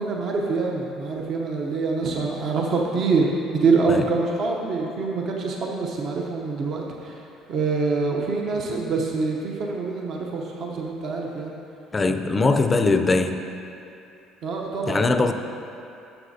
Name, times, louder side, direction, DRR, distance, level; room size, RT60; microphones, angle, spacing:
voice 1, 0.0-7.2 7.5-11.5 14.4-15.3, right 4 dB, 50° right, -1 dB, 0.7 m, -25 dB
voice 2, 11.9-13.4 14.9-15.3, left 3 dB, 20° left, 7 dB, 0.4 m, -21 dB
11.5 x 7.0 x 2.7 m, 2.7 s
cardioid pair, 120°, 0 cm